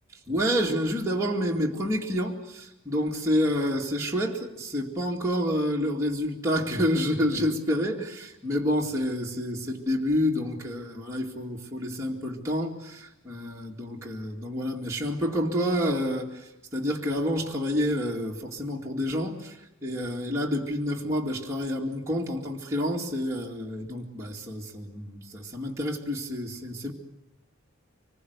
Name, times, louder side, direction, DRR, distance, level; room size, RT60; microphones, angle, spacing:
voice 1, 0.3-26.9, equal, 15° right, -3 dB, 2.2 m, -28 dB
25.0 x 21.0 x 8.1 m, 0.92 s
head